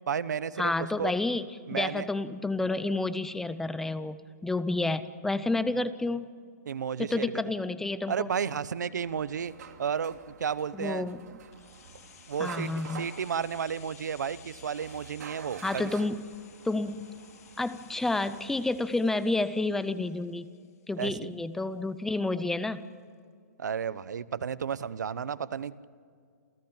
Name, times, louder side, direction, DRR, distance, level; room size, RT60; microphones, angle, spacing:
voice 1, 0.1-1.1 1.7-2.1 6.7-7.3 8.1-9.5 9.8-11.1 12.3-15.9 21.0-21.3 23.6-25.8, right 7 dB, 85° right, 17 dB, 1.0 m, -32 dB
voice 2, 0.6-6.3 7.0-8.3 10.7-11.4 12.4-13.1 15.6-16.3 16.6-17.1 17.6-20.5 20.9-22.9, left 2 dB, 5° left, 14 dB, 0.5 m, -30 dB
sound 1, 9.0-18.8, right 7 dB, 70° right, 2.7 m, -49 dB
sound 2, 11.5-21.3 21.6-21.7, left 9 dB, 60° left, 2.6 m, -55 dB
28.0 x 15.0 x 9.0 m, 2.2 s
hypercardioid pair, 160°, 9 cm